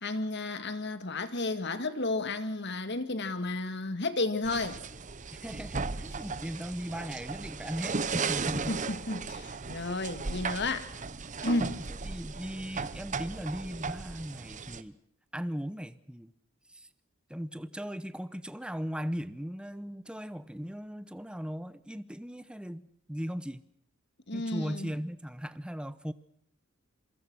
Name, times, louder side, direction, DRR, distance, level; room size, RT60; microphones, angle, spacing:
voice 1, 0.0-4.8 8.7-10.9 11.4-11.8 24.3-24.9, left 2 dB, 55° left, 2.0 m, -32 dB
sound 1, 4.4-14.8, right 4 dB, 35° right, 0.9 m, -36 dB
voice 2, 5.4-8.8 12.0-15.0 15.3-16.3 16.7-16.9 17.3-23.6 24.3-26.1, equal, 5° right, 0.9 m, -38 dB
27.0 x 24.0 x 6.3 m
head